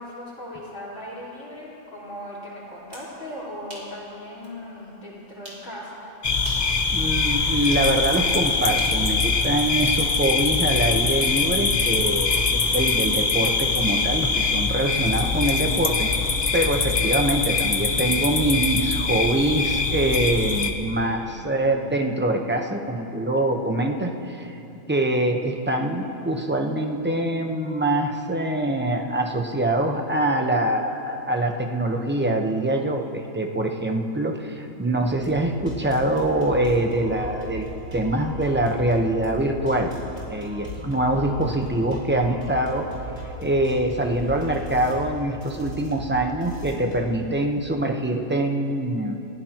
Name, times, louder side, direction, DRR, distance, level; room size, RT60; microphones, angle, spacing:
voice 1, 0.0-6.0, left 1 dB, 75° left, -8 dB, 4.9 m, -38 dB
sound 1, 2.7-3.1 3.7-3.9 4.4-4.5 5.4-5.7 6.4-6.7 7.7-7.9 8.8-10.0, right 1 dB, 40° right, 3.4 m, -41 dB
sound 2, 6.2-20.7, left 4 dB, 40° left, 0.8 m, -23 dB
voice 2, 6.9-16.1 16.5-24.6 24.9-39.9 40.3-42.9 43.4-49.2, right 1 dB, 10° right, 2 dB, 0.8 m, -24 dB
sound 3, 35.0-47.1, equal, 70° right, 4.3 m, -38 dB
29.5 x 15.0 x 3.0 m, 2.9 s
omnidirectional pair, 1.4 m